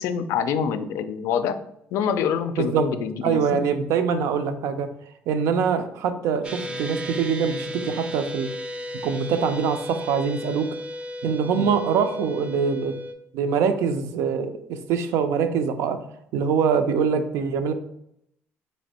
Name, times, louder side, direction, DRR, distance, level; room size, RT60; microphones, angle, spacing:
voice 1, 0.0-1.6 1.9-3.6 11.6-11.7, left 7 dB, 75° left, 10 dB, 0.3 m, -26 dB
voice 2, 2.6-2.9 3.2-4.9 5.3-8.5 9.0-10.7 11.2-13.0 13.3-16.0 16.3-17.7, right 6 dB, 80° right, 9 dB, 0.4 m, -24 dB
sound 1, 6.4-13.1, equal, 20° right, 0.4 m, -34 dB
3.2 x 2.6 x 4.1 m, 0.76 s
cardioid pair, 110°, 5 cm